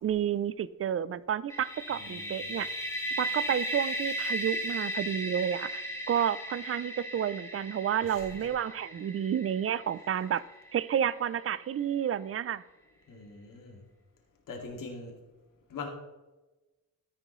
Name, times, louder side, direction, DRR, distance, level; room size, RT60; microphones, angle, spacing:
voice 1, 0.0-2.7 3.2-10.4 10.7-12.6, right 9 dB, 45° right, 17 dB, 0.5 m, -30 dB
sound 1, 1.5-11.2, right 1 dB, 10° left, 2.1 m, -36 dB
voice 2, 1.9-2.5 8.0-8.3 13.1-13.8 14.5-15.1 15.7-15.9, left 4 dB, 75° left, 0 dB, 2.3 m, -42 dB
13.0 x 10.5 x 3.1 m, 1.1 s
cardioid pair, 110°, 33 cm